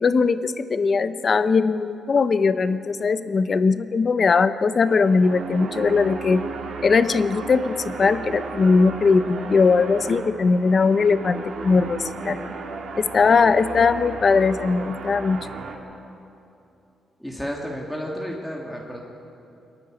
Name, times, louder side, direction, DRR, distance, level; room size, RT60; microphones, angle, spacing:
voice 1, 0.0-6.4 6.8-12.5 12.9-15.5, left 4 dB, 30° left, 13 dB, 0.6 m, -20 dB
sound 1, 4.6-15.7, right 4 dB, 60° right, 2.3 m, -35 dB
voice 2, 17.2-19.0, equal, 5° left, -2 dB, 1.7 m, -32 dB
28.0 x 9.8 x 9.8 m, 2.8 s
wide cardioid pair, 175°, 0 cm